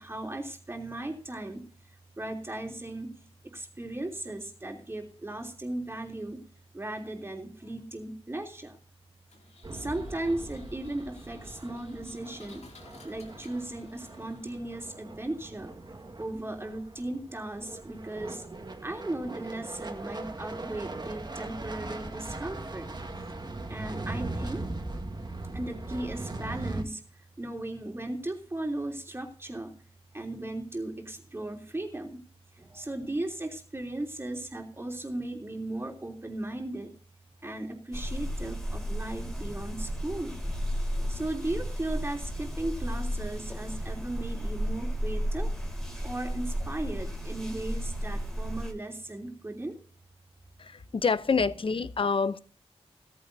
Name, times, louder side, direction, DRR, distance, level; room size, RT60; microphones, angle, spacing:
voice 1, 0.0-1.6 2.2-3.1 3.4-6.4 6.7-8.8 9.7-12.6 13.0-15.7 16.2-18.4 18.8-22.9 23.7-24.7 25.5-27.0 27.4-29.7 30.1-32.2 32.6-36.9 37.4-40.4 41.1-45.5 46.0-49.8, right 1 dB, 20° right, 3.2 m, -36 dB
Engine, 9.3-15.0, left 3 dB, 85° left, 2.6 m, -56 dB
sound 1, 9.6-26.8, right 2 dB, 40° right, 1.8 m, -40 dB
sound 2, 37.9-48.7, equal, 5° left, 3.8 m, -33 dB
voice 2, 50.6-52.4, left 5 dB, 55° left, 0.7 m, -27 dB
17.0 x 14.5 x 2.7 m
wide cardioid pair, 105°, 11 cm